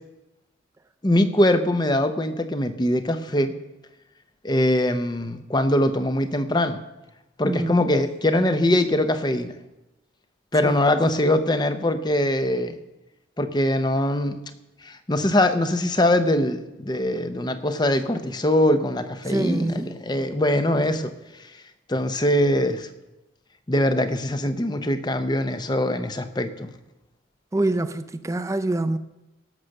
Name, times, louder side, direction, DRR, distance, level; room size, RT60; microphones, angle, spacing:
voice 1, 1.0-3.5 4.4-6.8 7.4-9.5 10.5-12.8 13.4-14.4 14.8-21.1 21.4-21.5 21.9-22.9 23.7-26.7, left 1 dB, 20° left, 0.7 m, -22 dB
voice 2, 7.4-7.9 10.6-10.8 19.2-20.0 27.5-29.0, right 2 dB, 15° right, 0.4 m, -26 dB
17.0 x 6.6 x 6.5 m
head